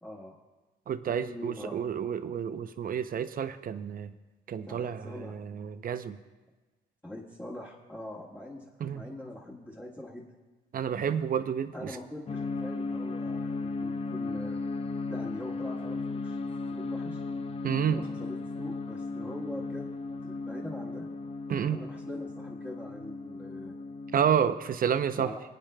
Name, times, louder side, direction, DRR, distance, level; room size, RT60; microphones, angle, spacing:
voice 1, 0.0-0.4 1.1-1.8 4.7-5.4 7.0-10.3 11.7-14.6 15.1-16.4 16.7-17.2 17.9-20.0 20.2-21.1 21.7-23.7 25.1-25.4, left 1 dB, 10° left, -7 dB, 1.5 m, -43 dB
voice 2, 0.9-4.1 4.5-6.2 8.8-9.0 10.7-11.7 17.6-18.0 21.5-21.8 24.1-25.3, right 8 dB, 45° right, 11 dB, 0.6 m, -29 dB
sound 1, 12.3-24.5, left 3 dB, 30° left, 0.5 m, -36 dB
24.0 x 8.9 x 2.2 m, 1.2 s
cardioid pair, 90°, 20 cm